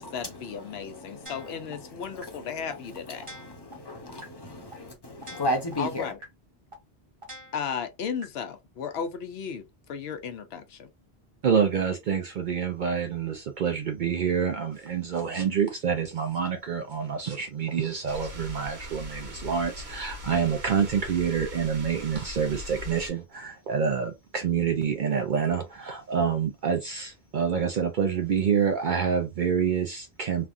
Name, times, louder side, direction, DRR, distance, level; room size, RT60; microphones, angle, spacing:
voice 1, 0.0-3.3 5.8-6.2 7.5-10.9, left 7 dB, 80° left, 0.8 m, -35 dB
voice 2, 0.7-2.5 2.9-6.1, left 1 dB, 25° left, 0.7 m, -35 dB
sound 1, 1.3-1.7 2.2-2.3 2.7-2.8 3.2-3.7 4.2-4.3 4.7-4.8 5.2-5.7 6.2-6.3 6.7-6.8 7.2-7.7 8.2-8.3, right 1 dB, 30° right, 1.1 m, -44 dB
voice 3, 11.4-30.5, right 7 dB, 60° right, 0.6 m, -27 dB
sound 2, 18.1-23.1, left 1 dB, 90° right, 1.7 m, -40 dB
3.4 x 2.3 x 2.5 m
omnidirectional pair, 1.0 m